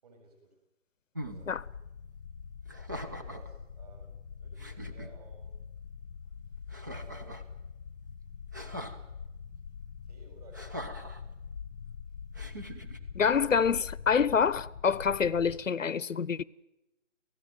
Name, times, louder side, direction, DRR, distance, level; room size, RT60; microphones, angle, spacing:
voice 1, 0.0-0.6 1.2-1.6 3.0-5.6 6.9-7.6 10.0-11.4, right 3 dB, 30° right, 7.3 m, -57 dB
sound 1, 1.1-1.4 2.7-3.5 4.2-4.3 4.6-5.1 6.7-7.5 8.5-9.0 10.5-11.2 12.3-13.0, equal, 15° right, 0.9 m, -41 dB
sound 2, 1.2-15.6, left 6 dB, 15° left, 1.2 m, -44 dB
voice 2, 13.1-16.4, left 6 dB, 80° left, 1.0 m, -26 dB
29.5 x 16.5 x 9.3 m
hypercardioid pair, 170°, 38 cm